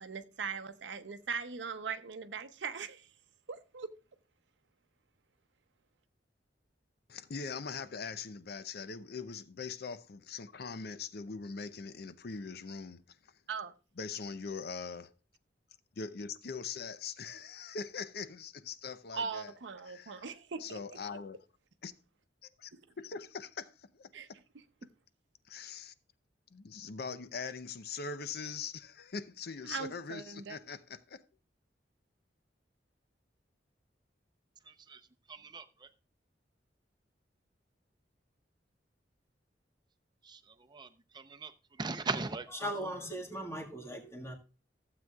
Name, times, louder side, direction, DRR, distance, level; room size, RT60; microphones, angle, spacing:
voice 1, 0.0-3.1 3.5-3.9 13.5-13.7 19.1-21.0 22.7-22.8 24.1-24.3 29.6-30.6, right 5 dB, 85° right, 0.7 m, -40 dB
voice 2, 7.1-13.0 14.0-15.1 16.0-19.5 19.9-20.3 20.6-21.4 21.8-21.9 22.4-22.7 23.0-24.4 24.8-24.9 25.5-25.9 26.5-31.2, left 5 dB, 60° left, 0.6 m, -42 dB
voice 3, 35.3-35.6 40.3-40.4 40.7-40.9 41.1-41.5 41.8-42.5, right 4 dB, 25° right, 0.7 m, -37 dB
voice 4, 42.5-44.3, equal, 15° left, 1.7 m, -39 dB
15.0 x 7.6 x 2.3 m
head